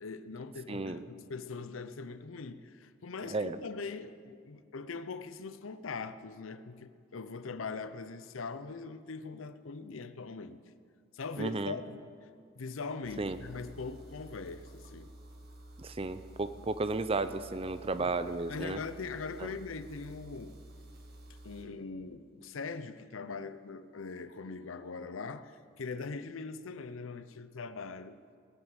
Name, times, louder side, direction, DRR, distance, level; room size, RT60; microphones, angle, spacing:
voice 1, 0.0-10.6 11.1-12.3 12.6-15.1 18.0-18.2 18.5-20.6 21.4-28.2, left 4 dB, 80° left, 0.6 m, -41 dB
voice 2, 0.7-1.0 3.3-3.6 11.4-11.8 13.2-13.4 15.8-18.8 19.4-19.5, right 3 dB, 30° right, 0.5 m, -33 dB
sound 1, 13.0-21.6, right 1 dB, 50° right, 1.8 m, -51 dB
20.0 x 6.8 x 8.9 m
head